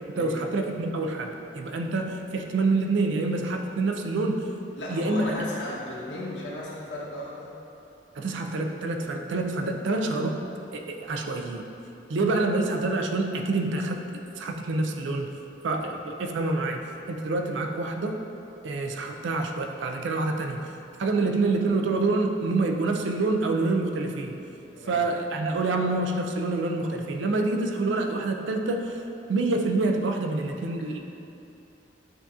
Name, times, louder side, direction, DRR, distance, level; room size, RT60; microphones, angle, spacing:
voice 1, 0.2-4.4 4.9-5.4 8.2-10.4 10.7-11.6 12.1-14.0 14.4-15.3 15.6-18.2 18.6-20.6 21.0-24.4 24.9-29.0 29.3-31.0, right 3 dB, 90° right, 4 dB, 0.4 m, -27 dB
voice 2, 4.8-7.5 15.7-15.9 24.7-25.0, left 1 dB, 90° left, -5 dB, 0.9 m, -35 dB
7.7 x 2.7 x 2.4 m, 2.8 s
head